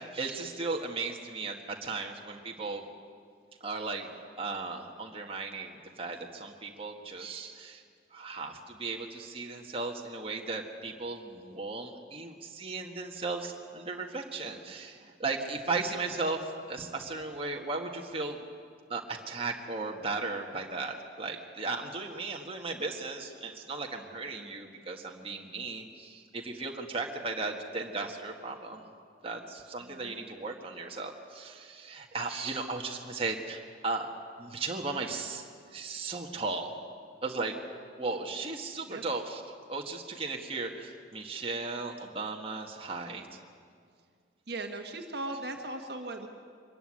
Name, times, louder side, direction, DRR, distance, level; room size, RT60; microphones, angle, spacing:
voice 1, 0.0-2.8 3.6-4.1 4.4-7.8 8.1-18.4 18.9-28.9 29.2-34.1 34.4-35.4 35.7-36.7 37.2-37.6 38.0-39.4 39.7-43.3, right 3 dB, 30° right, 1 dB, 1.7 m, -36 dB
voice 2, 29.8-30.2 38.9-39.0 44.5-46.3, right 2 dB, 55° right, 4 dB, 1.6 m, -38 dB
24.0 x 14.0 x 9.9 m, 2.2 s
head